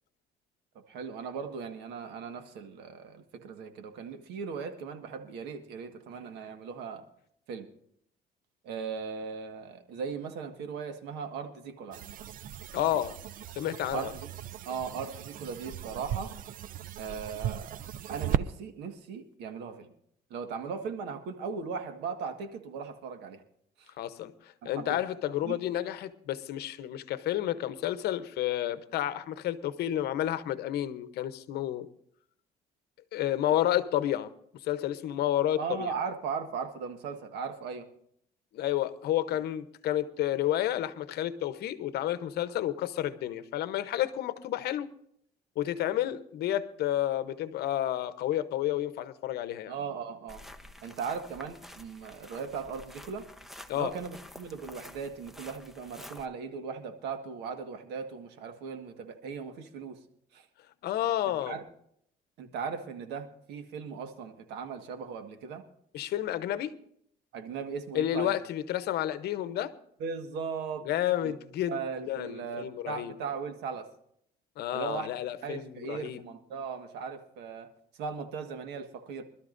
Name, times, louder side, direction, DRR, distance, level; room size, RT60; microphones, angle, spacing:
voice 1, 0.9-7.0 7.5-7.7 8.6-12.0 13.9-14.3 14.6-16.3 17.0-17.8 18.1-19.9 20.3-23.4 23.8-23.9 24.6-25.0 25.4-25.6 35.6-37.9 49.7-50.4 50.8-53.2 53.7-60.0 60.3-60.4 61.5-61.6 62.4-65.6 67.3-68.4 70.0-70.8 71.2-71.4 71.7-73.9 74.7-75.1 75.4-77.7 78.0-79.2, right 5 dB, 85° right, 1.6 m, -38 dB
sound 1, 11.9-18.5, right 11 dB, 55° right, 0.5 m, -37 dB
voice 2, 12.7-13.2 13.6-14.1 24.0-24.3 24.6-31.9 33.1-34.3 34.6-35.9 38.5-44.9 45.6-49.7 53.7-53.9 60.8-61.5 65.9-66.8 67.9-69.7 70.9-71.8 72.1-73.1 74.6-76.2, left 12 dB, 70° left, 0.9 m, -30 dB
sound 2, 50.3-56.3, left 1 dB, ahead, 0.8 m, -49 dB
24.5 x 12.5 x 2.6 m
cardioid pair, 110°, 17 cm